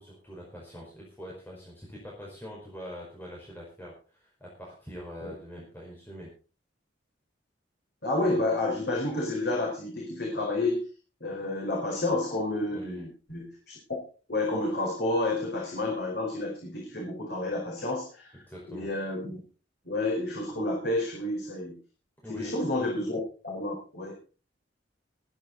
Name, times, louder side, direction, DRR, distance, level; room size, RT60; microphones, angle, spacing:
voice 1, 0.0-6.3 12.7-13.0 18.5-18.9 22.2-22.5, equal, 10° left, -4 dB, 5.0 m, -44 dB
voice 2, 8.0-10.9 11.2-13.7 14.3-18.3 18.7-19.4 19.8-21.8 22.3-24.1, left 2 dB, 60° left, -1 dB, 4.5 m, -30 dB
20.5 x 10.0 x 4.0 m, 0.36 s
head